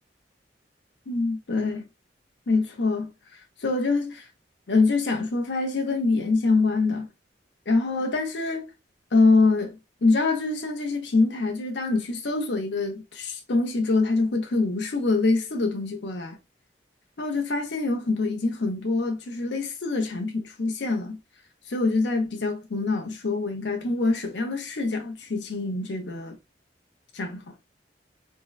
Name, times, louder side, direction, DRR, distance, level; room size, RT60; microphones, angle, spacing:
voice 1, 1.1-1.9 2.5-3.1 3.6-4.2 4.7-7.1 7.7-8.6 9.1-16.4 17.2-21.2 21.7-26.4 27.1-27.5, left 3 dB, 80° left, 0.8 m, -25 dB
3.7 x 2.1 x 2.3 m
head